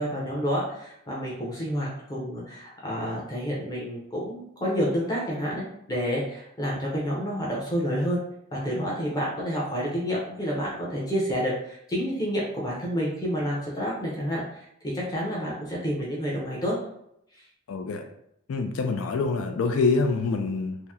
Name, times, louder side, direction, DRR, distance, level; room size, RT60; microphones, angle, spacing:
voice 1, 0.0-8.2 8.5-16.7, equal, 20° left, -5 dB, 0.6 m, -29 dB
voice 2, 17.7-18.0 18.5-20.8, left 4 dB, 85° left, 6 dB, 0.4 m, -25 dB
2.8 x 2.0 x 3.5 m, 0.76 s
head